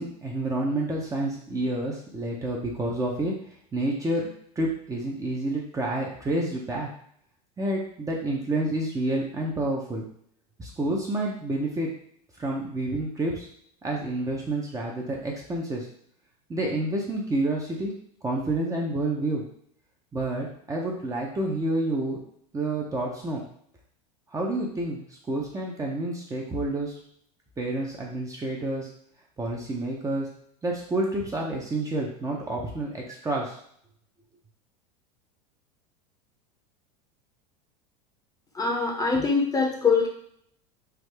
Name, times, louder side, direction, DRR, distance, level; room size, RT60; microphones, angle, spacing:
voice 1, 0.0-3.3 3.7-6.9 7.6-10.1 10.6-11.9 12.4-13.5 13.8-15.9 16.5-17.9 18.2-19.4 20.1-22.2 22.5-23.4 24.3-26.9 27.6-28.9 29.4-30.3 30.6-33.6, right 1 dB, 15° right, -2 dB, 0.7 m, -29 dB
voice 2, 38.5-40.1, left 4 dB, 20° left, 0 dB, 0.7 m, -23 dB
3.5 x 2.0 x 3.3 m, 0.65 s
hypercardioid pair, 100°, 20 cm